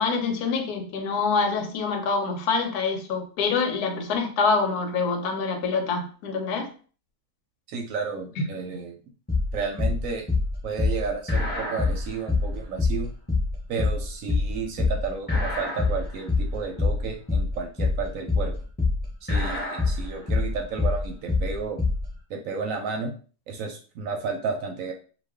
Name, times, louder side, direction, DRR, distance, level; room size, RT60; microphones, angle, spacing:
voice 1, 0.0-6.7 8.4-8.5, left 4 dB, 80° left, 5 dB, 1.1 m, -26 dB
voice 2, 7.7-9.0 9.5-10.2 10.6-13.1 13.7-18.5 19.2-21.8 22.3-23.1 23.5-24.9, right 5 dB, 70° right, 3 dB, 0.9 m, -32 dB
sound 1, 9.3-22.1, left 3 dB, 10° left, 0.6 m, -25 dB
2.4 x 2.3 x 3.4 m, 0.39 s
omnidirectional pair, 1.6 m